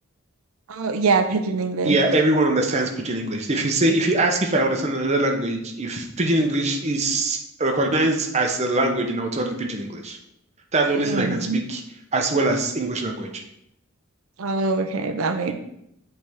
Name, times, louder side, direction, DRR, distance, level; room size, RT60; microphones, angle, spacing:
voice 1, 0.7-2.0 11.0-11.6 14.4-15.5, right 4 dB, 85° right, 7 dB, 0.5 m, -23 dB
voice 2, 1.8-10.2 10.7-11.8 12.1-13.4, right 2 dB, 30° right, 2 dB, 0.7 m, -22 dB
7.8 x 3.5 x 3.5 m, 0.77 s
head